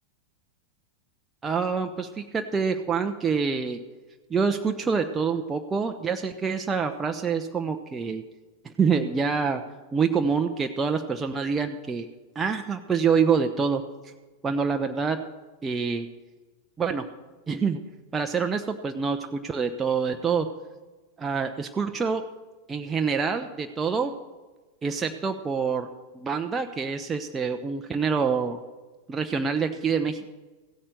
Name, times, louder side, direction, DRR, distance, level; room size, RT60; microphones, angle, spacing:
voice 1, 1.4-3.8 4.3-8.2 8.6-9.6 9.9-12.1 12.3-14.1 14.4-15.2 15.6-16.1 16.8-17.0 17.5-17.8 18.1-20.5 21.2-22.2 22.7-24.1 24.8-25.9 26.1-28.6 29.1-30.3, right 5 dB, 15° right, 5 dB, 0.8 m, -26 dB
16.0 x 8.7 x 6.8 m, 1.2 s
figure-of-eight pair, 90°, 0 cm